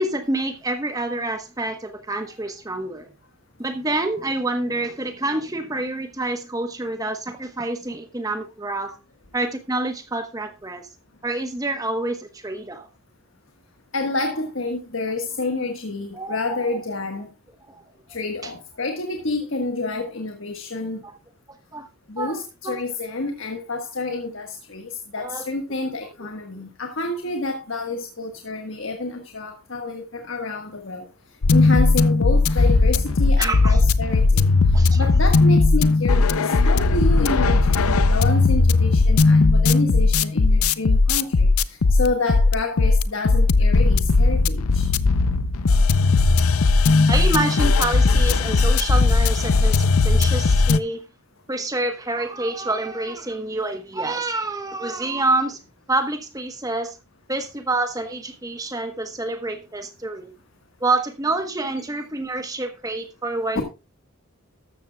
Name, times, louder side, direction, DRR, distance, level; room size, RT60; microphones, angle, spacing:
voice 1, 0.0-3.1 3.6-8.9 9.3-10.9 11.2-12.9 16.1-16.4 17.7-17.8 18.4-18.5 21.7-21.9 22.2-22.8 25.2-25.4 33.4-33.8 34.7-35.1 47.1-51.0 51.5-55.6 55.9-57.0 57.3-60.3 60.8-63.6, right 2 dB, 15° right, 7 dB, 1.1 m, -27 dB
voice 2, 13.9-17.3 18.1-21.0 22.1-31.0 31.5-44.9 63.5-63.6, left 2 dB, 60° left, 4 dB, 1.5 m, -29 dB
sound 1, 31.4-50.8, left 3 dB, 80° left, 0.6 m, -17 dB
13.5 x 13.0 x 2.3 m, 0.29 s
head